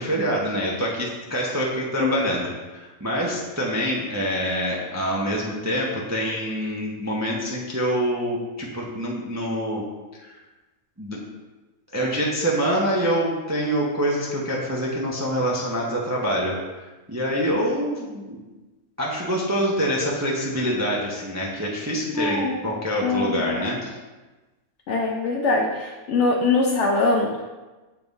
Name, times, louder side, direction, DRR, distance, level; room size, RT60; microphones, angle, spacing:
voice 1, 0.0-9.8 10.2-10.3 11.0-11.2 11.9-18.4 19.0-23.9, equal, 20° right, -3 dB, 0.5 m, -26 dB
voice 2, 22.2-22.5 23.0-23.7 24.9-27.3, left 3 dB, 60° left, 1 dB, 0.8 m, -22 dB
6.8 x 3.6 x 4.0 m, 1.2 s
omnidirectional pair, 1.6 m